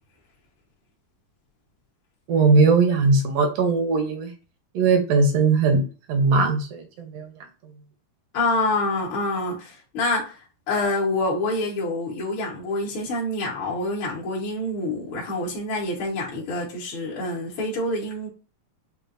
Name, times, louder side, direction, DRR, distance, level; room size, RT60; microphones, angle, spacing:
voice 1, 2.3-4.3 4.7-5.8 6.1-7.3, right 4 dB, 75° right, 1.4 m, -19 dB
voice 2, 8.3-10.4 10.7-18.3, left 2 dB, 60° left, 1.3 m, -26 dB
7.4 x 2.6 x 2.6 m
omnidirectional pair, 4.2 m